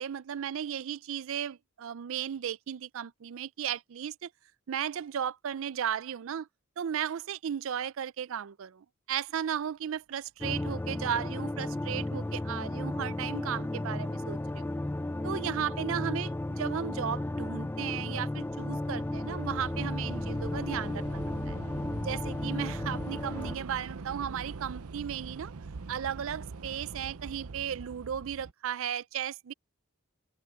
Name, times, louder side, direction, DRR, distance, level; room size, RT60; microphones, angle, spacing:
voice 1, 0.0-4.3 4.7-6.5 6.8-14.7 15.2-21.5 22.0-25.5 25.9-29.5, right 9 dB, 65° right, 0.4 m, -35 dB
sound 1, 10.4-23.6, left 1 dB, 10° left, 0.3 m, -34 dB
Train / Subway metro underground, 16.4-28.5, right 4 dB, 90° right, 0.7 m, -44 dB
open air
head